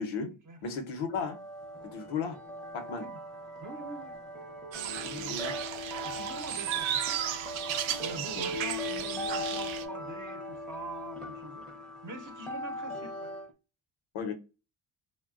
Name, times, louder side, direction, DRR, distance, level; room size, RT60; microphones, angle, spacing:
voice 1, 0.0-0.3 0.6-1.4 1.8-2.4 2.7-3.1 5.2-5.6 8.1-8.5 14.1-14.3, left 5 dB, 85° left, 0.8 m, -35 dB
sound 1, 1.1-13.5, left 1 dB, ahead, 0.6 m, -39 dB
voice 2, 3.6-4.2 4.9-5.4 6.0-7.2 8.0-11.6 12.0-13.3, right 3 dB, 40° right, 0.8 m, -44 dB
sound 2, 4.7-9.8, right 10 dB, 75° right, 0.6 m, -34 dB
3.3 x 2.2 x 2.3 m
wide cardioid pair, 155°, 47 cm